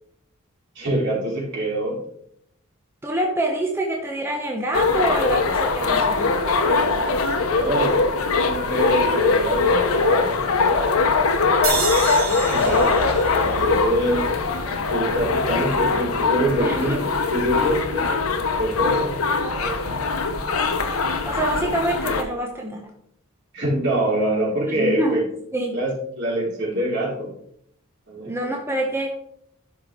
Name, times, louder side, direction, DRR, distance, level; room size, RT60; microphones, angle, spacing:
voice 1, 0.8-2.0 6.7-8.0 8.4-10.5 12.2-14.3 14.9-18.0 18.6-19.1 19.5-20.1 23.5-25.2 25.7-27.3 28.1-28.4, right 1 dB, 55° right, -5 dB, 3.8 m, -25 dB
voice 2, 3.0-6.4 16.6-17.0 21.2-22.9 24.6-25.2 25.5-25.8 28.3-29.2, right 1 dB, 10° right, 1 dB, 0.8 m, -26 dB
sound 1, 4.7-22.2, left 4 dB, 80° left, 0.9 m, -21 dB
sound 2, 11.6-14.9, right 5 dB, 80° right, 2.0 m, -30 dB
12.5 x 5.1 x 3.7 m, 0.72 s
head